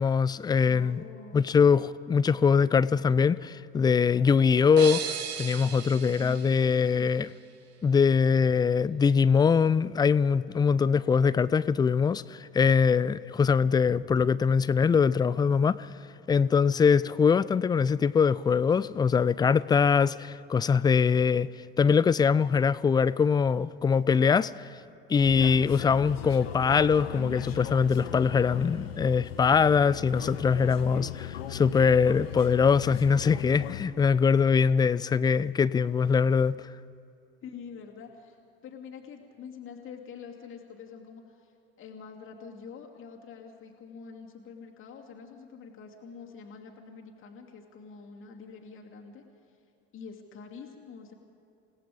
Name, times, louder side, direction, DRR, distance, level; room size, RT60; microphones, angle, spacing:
voice 1, 0.0-1.0 1.3-5.0 5.4-7.3 7.8-15.9 16.3-21.5 21.8-24.7 25.1-36.6, left 6 dB, 15° left, 18 dB, 0.4 m, -23 dB
voice 2, 0.6-1.4 6.2-7.1 37.4-38.4 38.6-49.2 49.9-51.1, left 6 dB, 40° left, 0 dB, 2.7 m, -46 dB
sound 1, 4.8-7.5, right 7 dB, 50° right, 1.7 m, -37 dB
sound 2, 25.2-33.9, left 10 dB, 70° left, 1.1 m, -38 dB
28.0 x 18.0 x 5.1 m, 2.8 s
figure-of-eight pair, 60°, 31 cm